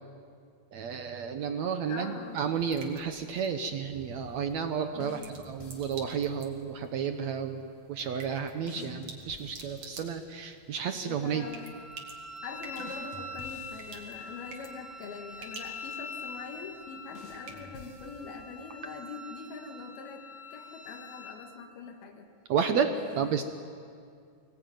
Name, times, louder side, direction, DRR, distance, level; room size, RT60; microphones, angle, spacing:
voice 1, 0.7-11.5 22.5-23.4, right 7 dB, 70° right, 7 dB, 1.8 m, -32 dB
sound 1, 1.8-18.3, right 4 dB, 50° right, 3.4 m, -51 dB
voice 2, 1.9-2.4 4.9-5.3 8.8-9.0 11.0-11.8 12.4-22.3 22.9-23.4, left 5 dB, 90° left, 2 dB, 3.6 m, -43 dB
sound 2, 5.0-6.4 8.7-10.6 12.8-14.9 17.2-18.8, left 4 dB, 55° left, 3.4 m, -51 dB
Wind instrument woodwind instrument, 11.4-21.4, left 2 dB, 35° left, 2.1 m, -44 dB
25.0 x 19.5 x 9.3 m, 2.2 s
omnidirectional pair, 4.2 m